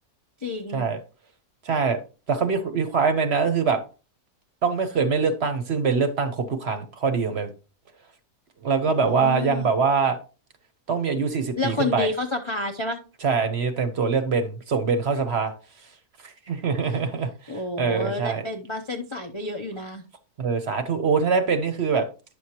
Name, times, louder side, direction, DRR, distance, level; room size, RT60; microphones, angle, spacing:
voice 1, 0.4-0.9 8.9-9.7 11.6-13.0 16.8-17.0 17.5-20.0, left 2 dB, 40° left, 0.4 m, -30 dB
voice 2, 1.6-2.0 2.3-3.8 4.6-7.5 8.6-10.2 10.9-12.1 13.2-15.5 16.2-18.5 20.4-22.1, right 5 dB, 50° right, 0.9 m, -24 dB
10.0 x 6.3 x 2.8 m
omnidirectional pair, 1.6 m